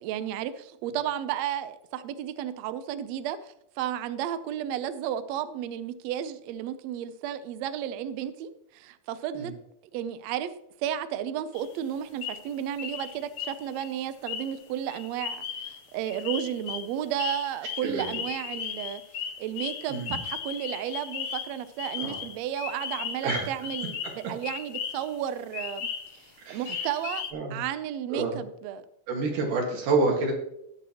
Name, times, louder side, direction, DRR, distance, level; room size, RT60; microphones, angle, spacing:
voice 1, 0.0-9.5 9.9-10.5 10.8-19.0 19.4-24.0 24.3-27.2 27.5-28.8, right 10 dB, 85° right, 12 dB, 1.5 m, -33 dB
sound 1, 11.6-11.7 12.2-12.5 12.8-25.2 25.5-26.3 26.7-27.3, left 7 dB, 70° left, 1.5 m, -36 dB
voice 2, 17.8-18.2 19.9-20.2 22.0-22.2 23.2-23.5 26.4-26.9 27.3-27.6 28.1-28.4 29.1-30.3, right 3 dB, 70° right, 1 dB, 3.3 m, -28 dB
18.5 x 6.2 x 2.9 m, 0.77 s
omnidirectional pair, 3.8 m